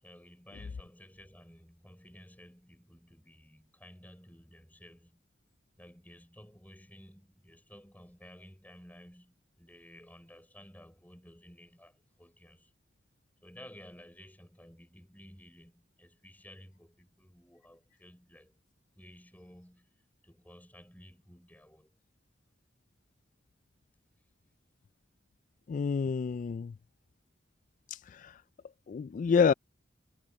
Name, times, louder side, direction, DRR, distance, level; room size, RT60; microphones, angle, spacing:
voice 1, 0.0-5.2 5.8-12.7 13.4-18.6 19.0-19.9 20.2-21.9 28.9-29.1, left 1 dB, 10° left, 5.2 m, -54 dB
voice 2, 25.7-26.7 27.9-28.4 28.9-29.5, left 6 dB, 45° left, 0.3 m, -28 dB
head